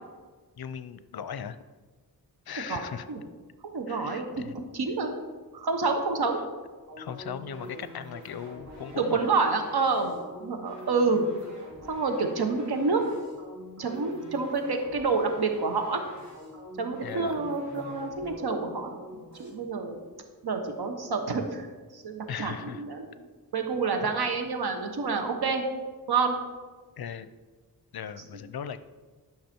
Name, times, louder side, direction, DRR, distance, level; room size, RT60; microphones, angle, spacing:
voice 1, 0.6-1.6 2.5-3.1 3.9-4.6 7.0-9.3 17.0-17.4 22.3-22.8 27.0-27.3 27.9-28.8, left 8 dB, 75° left, 13 dB, 0.6 m, -38 dB
voice 2, 3.7-4.3 4.7-5.1 5.5-6.4 9.0-11.3 11.9-13.0 13.8-16.0 16.8-18.9 19.4-20.0 20.4-21.7 21.9-25.6 26.1-26.4, right 4 dB, 90° right, 5 dB, 1.2 m, -28 dB
sound 1, 6.9-19.5, equal, 45° right, 3.0 m, -46 dB
12.0 x 5.9 x 4.4 m, 1.4 s
wide cardioid pair, 95°, 37 cm